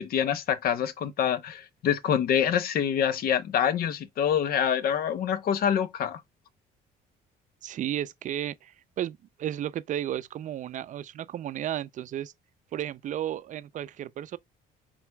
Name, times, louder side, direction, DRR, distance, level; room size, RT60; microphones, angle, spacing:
voice 1, 0.0-6.2, left 9 dB, 60° left, 0.8 m, -26 dB
voice 2, 7.6-12.3 12.7-14.4, right 11 dB, 50° right, 0.4 m, -33 dB
6.0 x 4.0 x 2.2 m
cardioid pair, 110°, 17 cm